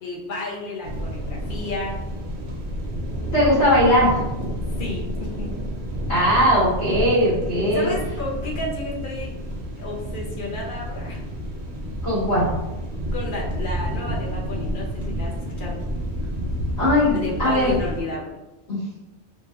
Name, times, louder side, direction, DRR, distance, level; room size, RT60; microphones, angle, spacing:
voice 1, 0.0-2.0 4.8-5.6 7.7-9.3 9.8-11.2 13.1-15.8 17.1-18.3, left 2 dB, 60° left, -3 dB, 0.6 m, -32 dB
sound 1, 0.8-18.0, equal, 75° right, 0.8 m, -30 dB
voice 2, 3.3-4.2 6.1-7.9 12.0-12.5 16.8-17.8 18.7-18.8, equal, 85° left, -11 dB, 1.4 m, -19 dB
2.8 x 2.1 x 2.2 m, 1.0 s
omnidirectional pair, 1.1 m